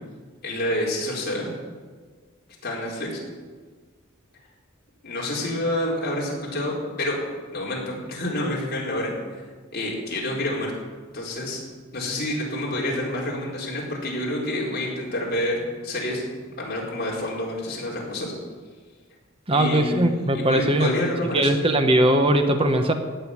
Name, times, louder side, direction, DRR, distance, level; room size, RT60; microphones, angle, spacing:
voice 1, 0.4-1.5 2.6-3.1 5.0-7.2 7.5-9.1 9.7-10.7 11.1-11.6 11.9-16.2 16.6-18.3 19.5-21.6, left 1 dB, 50° left, -3 dB, 4.5 m, -28 dB
voice 2, 19.5-20.9 21.3-22.9, right 1 dB, 25° right, 7 dB, 1.0 m, -20 dB
17.0 x 6.7 x 9.9 m, 1.5 s
head